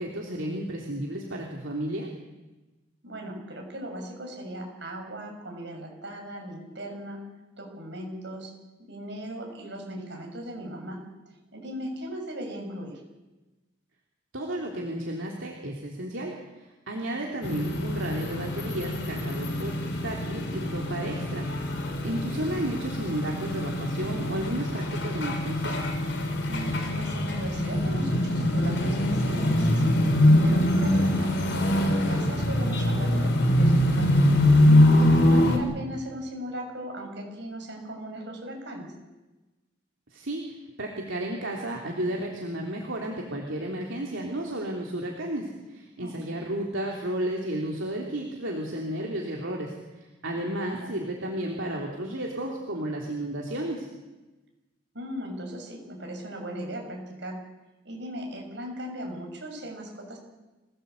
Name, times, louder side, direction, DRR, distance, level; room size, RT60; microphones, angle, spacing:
voice 1, 0.0-2.1 14.3-16.3 16.6-25.8 40.1-53.9, right 1 dB, 80° right, -1 dB, 3.3 m, -33 dB
voice 2, 3.0-7.2 7.6-8.5 8.8-11.0 11.5-13.0 17.0-17.3 26.5-30.0 30.4-31.3 31.9-34.3 34.9-38.9 46.0-46.5 50.3-50.9 54.9-57.4 57.8-60.2, equal, 65° right, 1 dB, 7.0 m, -38 dB
sound 1, 17.4-35.6, left 1 dB, 60° left, 4.3 m, -23 dB
25.5 x 17.0 x 8.4 m, 1.1 s
head